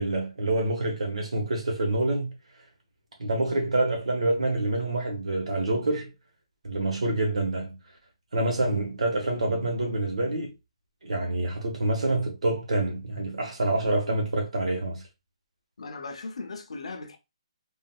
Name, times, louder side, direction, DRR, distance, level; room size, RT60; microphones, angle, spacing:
voice 1, 0.0-2.3 3.2-6.1 6.6-7.8 8.3-10.5 11.0-15.0, right 2 dB, 85° right, 1.3 m, -27 dB
voice 2, 15.8-17.2, left 3 dB, 75° left, 0.7 m, -38 dB
3.8 x 2.5 x 2.3 m
hypercardioid pair, 175°, 3 cm